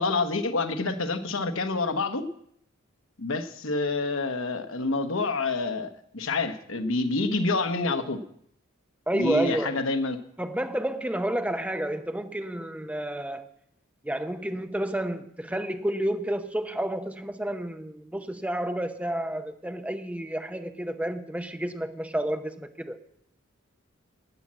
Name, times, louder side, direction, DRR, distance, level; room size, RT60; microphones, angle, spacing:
voice 1, 0.0-2.3 3.2-8.2 9.1-10.2, left 3 dB, 80° left, 8 dB, 1.1 m, -27 dB
voice 2, 9.1-9.8 10.4-13.4 14.0-23.0, right 1 dB, 5° right, 8 dB, 0.8 m, -30 dB
12.0 x 8.6 x 7.5 m, 0.72 s
head